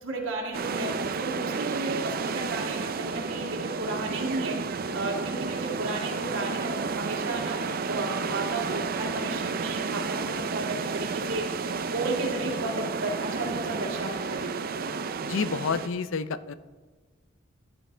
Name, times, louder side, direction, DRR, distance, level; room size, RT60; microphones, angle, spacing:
voice 1, 0.0-4.6 4.9-14.5, right 2 dB, 85° right, -2 dB, 2.2 m, -33 dB
sound 1, 0.5-15.9, right 4 dB, 45° right, 0.5 m, -31 dB
voice 2, 15.2-16.5, left 5 dB, 75° left, 14 dB, 0.5 m, -29 dB
14.0 x 9.7 x 3.3 m, 1.4 s
head